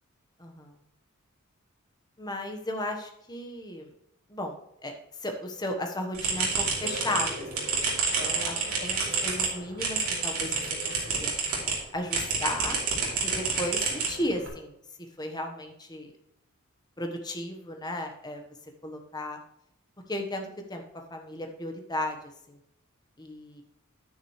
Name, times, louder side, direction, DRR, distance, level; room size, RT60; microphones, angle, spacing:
voice 1, 0.4-0.7 2.2-3.9 4.3-4.6 4.8-4.9 5.2-10.9 11.2-11.3 11.9-12.8 13.2-14.7 15.2-16.1 17.0-18.4 18.8-19.4 20.1-20.8 21.1-22.2 22.5-22.6 23.2-23.6, left 1 dB, 20° left, 3 dB, 1.2 m, -35 dB
sound 1, 6.1-11.8 12.1-14.5, right 4 dB, 85° right, 3.1 m, -29 dB
10.5 x 9.5 x 3.2 m, 0.79 s
head